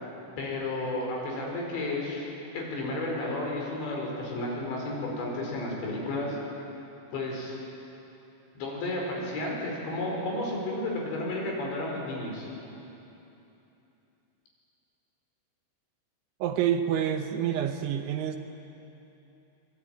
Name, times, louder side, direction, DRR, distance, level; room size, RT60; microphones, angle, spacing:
voice 1, 0.4-6.4 7.1-7.6 8.5-12.5, left 2 dB, 60° left, -1 dB, 7.2 m, -32 dB
voice 2, 16.4-18.4, right 9 dB, 75° right, 7 dB, 3.1 m, -27 dB
26.0 x 22.0 x 9.2 m, 2.9 s
omnidirectional pair, 5.8 m